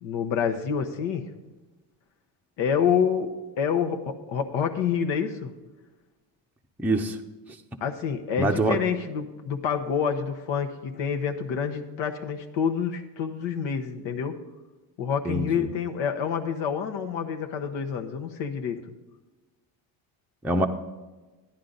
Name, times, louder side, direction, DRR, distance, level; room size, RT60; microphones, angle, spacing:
voice 1, 0.0-1.2 2.6-3.3 3.6-5.5 7.8-14.3 15.0-18.8, left 7 dB, 70° left, 5 dB, 1.1 m, -27 dB
voice 2, 6.8-7.2 8.4-8.8 15.2-15.7 20.4-20.7, right 2 dB, 5° right, 2 dB, 0.6 m, -24 dB
13.5 x 10.0 x 4.0 m, 1.2 s
cardioid pair, 120°, 46 cm